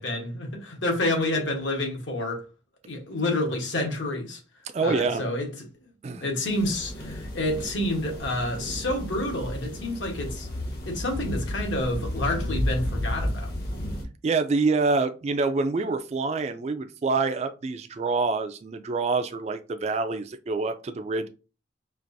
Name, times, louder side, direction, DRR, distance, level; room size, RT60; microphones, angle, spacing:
voice 1, 0.0-2.4 2.8-4.4 4.8-5.5 6.2-10.5 10.8-13.5, left 1 dB, 70° left, 1.1 m, -28 dB
voice 2, 4.7-5.2 6.0-6.2 14.2-21.3, right 4 dB, 35° right, 0.3 m, -26 dB
sound 1, 6.5-14.0, left 1 dB, 55° left, 0.9 m, -32 dB
4.6 x 2.5 x 2.6 m
head